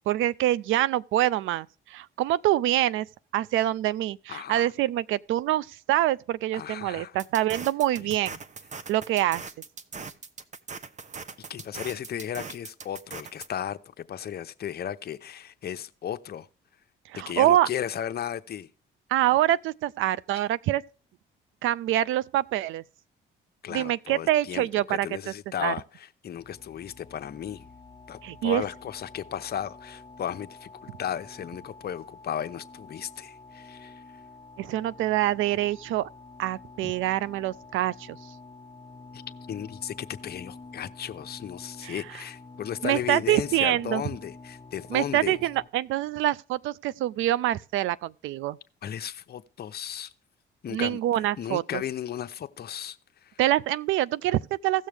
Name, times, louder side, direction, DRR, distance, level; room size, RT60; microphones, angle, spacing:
voice 1, 0.1-3.1 3.3-8.4 8.9-9.4 17.1-17.7 19.1-20.8 21.6-22.8 23.7-25.1 25.6-25.7 28.2-28.6 34.6-36.1 36.4-38.2 41.8-42.0 42.8-44.0 44.9-48.6 50.7-51.8 53.4-54.9, right 14 dB, 85° right, 0.4 m, -25 dB
voice 2, 4.3-4.7 6.5-7.2 8.0-8.1 11.5-16.5 17.1-18.7 23.6-27.7 28.1-34.0 36.8-36.9 39.1-39.2 39.5-45.4 48.8-50.1 50.6-51.0 51.4-53.0 53.2-53.4, left 9 dB, 55° left, 0.8 m, -35 dB
sound 1, 7.2-13.5, right 5 dB, 35° right, 0.9 m, -40 dB
sound 2, 26.4-45.7, left 3 dB, 20° left, 1.1 m, -48 dB
16.5 x 6.4 x 3.4 m
cardioid pair, 90°, 20 cm